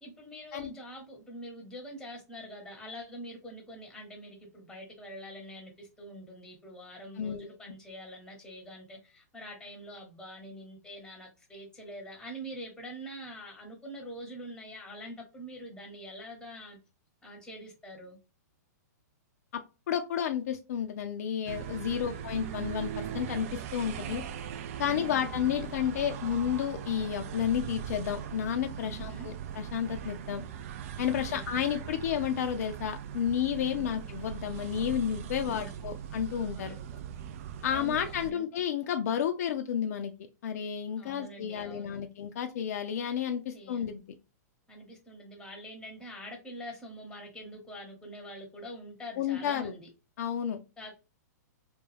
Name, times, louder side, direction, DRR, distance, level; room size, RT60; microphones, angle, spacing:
voice 1, 0.0-16.8 17.2-18.2 21.8-22.3 24.8-25.3 28.8-29.3 31.1-31.6 33.6-33.9 35.4-36.0 36.5-37.0 37.6-38.5 41.0-42.1 43.5-43.9 44.7-49.9 50.8-50.9, equal, 5° left, 0.9 m, -45 dB
voice 2, 7.2-7.5 19.9-24.2 24.8-30.4 31.0-36.7 37.6-40.1 40.4-44.0 49.2-49.7 50.2-50.6, left 9 dB, 60° left, 0.4 m, -31 dB
sound 1, 21.5-38.3, right 9 dB, 50° right, 0.3 m, -40 dB
2.3 x 2.2 x 3.2 m
hypercardioid pair, 125°, 10 cm